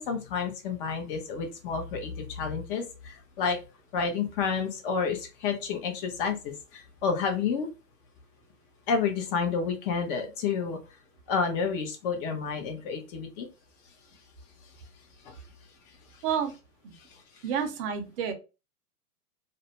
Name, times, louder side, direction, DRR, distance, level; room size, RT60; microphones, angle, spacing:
voice 1, 0.0-3.6 3.9-7.7 8.9-10.8 11.3-13.5 15.2-15.4 17.1-17.2, left 5 dB, 35° left, 4 dB, 0.7 m, -30 dB
voice 2, 17.4-18.3, right 7 dB, 40° right, 5 dB, 0.6 m, -29 dB
2.5 x 2.1 x 2.9 m, 0.30 s
hypercardioid pair, 130°, 46 cm